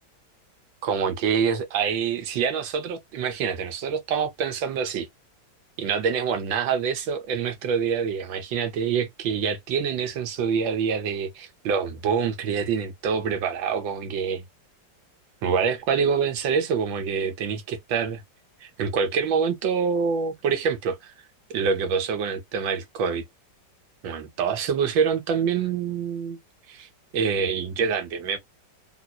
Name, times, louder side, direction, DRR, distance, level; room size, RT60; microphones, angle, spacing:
voice 1, 0.8-5.1 5.8-14.4 15.4-18.2 18.6-21.1 21.5-23.2 24.0-26.4 26.7-26.9 27.1-28.4, right 6 dB, 90° right, 1.6 m, -26 dB
3.2 x 3.0 x 2.2 m
omnidirectional pair, 2.0 m